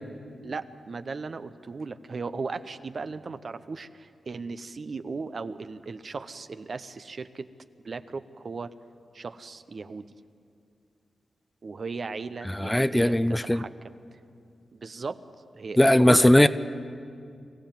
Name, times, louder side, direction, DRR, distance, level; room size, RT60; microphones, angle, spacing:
voice 1, 0.4-7.5 7.8-8.7 9.1-10.1 11.6-13.7 14.7-15.2 15.5-16.5, right 4 dB, 60° right, 11 dB, 0.7 m, -36 dB
voice 2, 12.5-13.6 15.8-16.5, left 1 dB, 10° left, 14 dB, 0.6 m, -19 dB
24.0 x 15.0 x 7.4 m, 2.4 s
cardioid pair, 50°, 0 cm